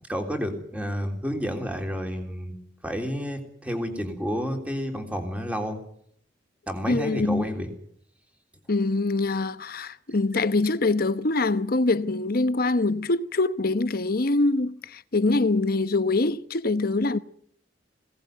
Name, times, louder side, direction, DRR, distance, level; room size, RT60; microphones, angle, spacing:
voice 1, 0.1-2.5 2.8-5.8 6.7-7.7, equal, 10° right, 3.5 m, -30 dB
voice 2, 6.9-7.4 8.7-17.2, left 2 dB, 55° left, 1.0 m, -24 dB
21.5 x 18.5 x 9.2 m
head